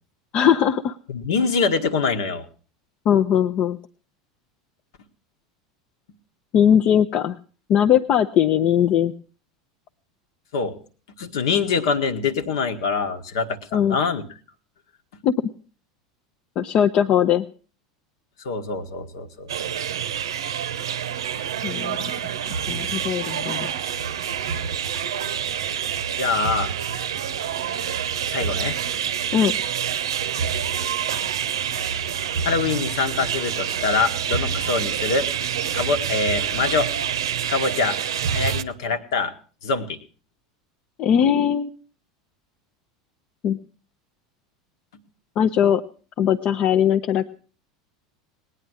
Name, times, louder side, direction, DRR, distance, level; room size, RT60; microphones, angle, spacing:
voice 1, 0.3-1.0 3.1-3.8 6.5-7.4 7.7-9.1 13.7-14.0 15.2-15.3 16.6-17.4 21.6-22.0 22.7-23.7 29.3-29.5 41.0-41.7 43.4-43.6 45.4-45.8 46.2-47.3, left 9 dB, 40° left, 7 dB, 0.7 m, -19 dB
voice 2, 1.1-2.5 10.5-10.8 11.2-14.2 18.4-19.7 26.2-26.7 28.3-28.8 32.4-35.3 35.7-36.9 37.5-38.0 38.3-39.3 39.6-40.0, left 4 dB, 65° left, 8 dB, 1.4 m, -24 dB
sound 1, 19.5-38.6, right 8 dB, 70° right, 0.7 m, -27 dB
18.5 x 9.9 x 6.3 m, 0.40 s
figure-of-eight pair, 80°, 3 cm